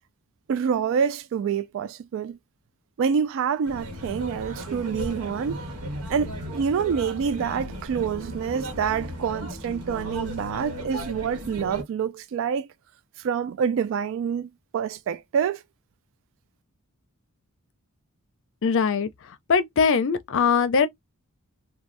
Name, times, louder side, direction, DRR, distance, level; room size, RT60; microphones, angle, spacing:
voice 1, 0.5-2.4 3.0-5.6 6.1-12.7 13.2-15.6, right 7 dB, 60° right, 0.3 m, -27 dB
sound 1, 3.6-11.8, equal, 85° right, 1.2 m, -36 dB
voice 2, 18.6-19.1 19.5-20.9, left 5 dB, 60° left, 0.5 m, -21 dB
3.1 x 2.2 x 2.5 m
head